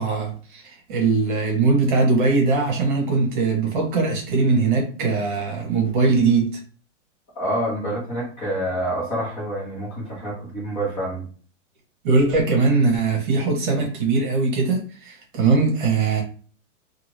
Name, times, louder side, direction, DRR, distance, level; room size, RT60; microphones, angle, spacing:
voice 1, 0.0-6.5 12.0-16.2, right 4 dB, 40° right, 1 dB, 1.1 m, -21 dB
voice 2, 7.3-11.2, right 1 dB, 20° left, -5 dB, 1.1 m, -27 dB
2.7 x 2.5 x 3.1 m, 0.41 s
supercardioid pair, 170°, 37 cm